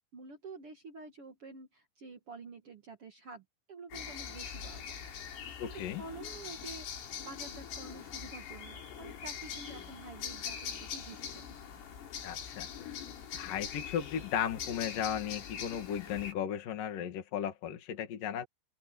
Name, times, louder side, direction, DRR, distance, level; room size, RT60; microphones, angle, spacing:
voice 1, 0.1-5.0 5.6-11.5, right 3 dB, 80° right, 1.2 m, -49 dB
sound 1, 3.9-16.3, left 8 dB, 85° left, 6.6 m, -43 dB
voice 2, 5.6-6.0 12.2-13.0 13.3-18.5, left 9 dB, 50° left, 3.4 m, -36 dB
open air
omnidirectional pair, 5.7 m